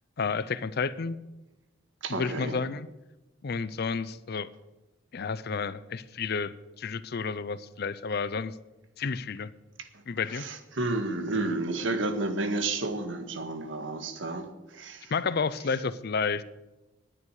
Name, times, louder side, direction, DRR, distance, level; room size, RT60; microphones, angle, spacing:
voice 1, 0.2-1.2 2.1-2.9 3.4-4.5 5.1-8.5 9.0-9.5 10.1-10.5 15.1-16.4, left 5 dB, 50° left, 16 dB, 0.5 m, -31 dB
voice 2, 2.0-2.6 10.3-15.1, right 2 dB, 70° right, 7 dB, 1.7 m, -31 dB
19.0 x 10.0 x 4.9 m, 1.1 s
head